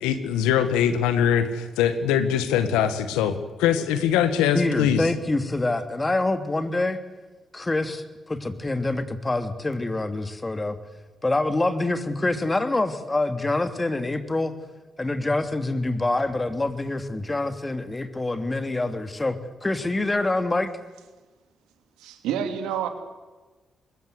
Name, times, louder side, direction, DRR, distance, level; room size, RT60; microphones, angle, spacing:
voice 1, 0.0-5.0, left 9 dB, 85° left, 11 dB, 1.7 m, -22 dB
voice 2, 4.5-7.0 7.5-10.8 11.2-14.5 15.0-20.7, left 2 dB, 25° left, 9 dB, 3.0 m, -26 dB
voice 3, 22.0-22.9, right 8 dB, 85° right, 7 dB, 2.7 m, -28 dB
24.0 x 21.5 x 8.1 m, 1.2 s
hypercardioid pair, 45°, 0 cm